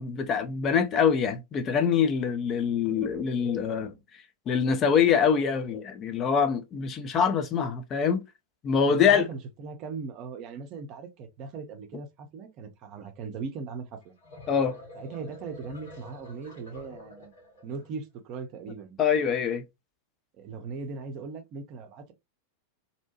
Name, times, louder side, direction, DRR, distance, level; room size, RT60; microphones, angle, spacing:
voice 1, 0.0-4.0 4.5-8.2 8.6-9.3 14.5-14.8 19.0-19.6, left 7 dB, 30° left, 0.5 m, -24 dB
voice 2, 8.9-14.1 15.0-17.3 17.6-19.0 20.4-22.1, right 4 dB, 40° right, 0.6 m, -39 dB
sound 1, 14.0-17.9, left 2 dB, 65° left, 1.4 m, -47 dB
2.7 x 2.1 x 2.8 m
figure-of-eight pair, 90°, 0 cm